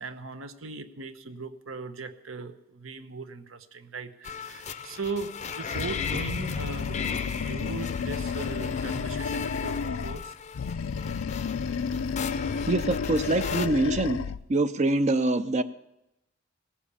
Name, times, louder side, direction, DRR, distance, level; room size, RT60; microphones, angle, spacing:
voice 1, 0.0-10.3, right 4 dB, 75° right, 9 dB, 1.0 m, -39 dB
sound 1, 4.2-13.7, left 6 dB, 35° left, 0.5 m, -37 dB
Animal, 5.7-10.2 10.5-14.4, left 5 dB, 85° left, 0.5 m, -31 dB
voice 2, 12.7-14.2 14.5-15.6, right 2 dB, 35° right, 11 dB, 0.4 m, -24 dB
17.5 x 7.2 x 8.4 m, 0.90 s
head